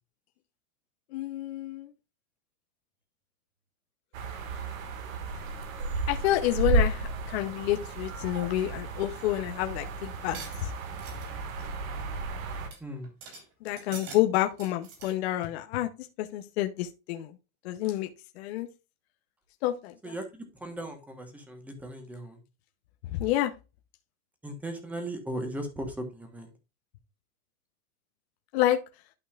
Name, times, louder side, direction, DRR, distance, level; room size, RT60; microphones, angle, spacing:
voice 1, 1.1-1.9 6.1-10.7 13.6-15.9 16.2-17.3 17.6-18.1 18.4-18.7 19.6-20.1 23.2-23.5 28.5-28.8, left 14 dB, 50° left, 6 dB, 0.9 m, -29 dB
sound 1, 4.1-12.7, right 3 dB, 70° right, 2.0 m, -33 dB
sound 2, 10.3-11.3 11.6-11.8 12.2-12.3 12.7-12.8 13.0-13.4 13.8-14.2 14.5-15.1, right 5 dB, 40° right, 3.7 m, -44 dB
voice 2, 20.0-22.4 24.4-26.5, right 1 dB, 5° right, 6 dB, 1.2 m, -37 dB
11.5 x 5.4 x 2.5 m, 0.28 s
supercardioid pair, 170°, 42 cm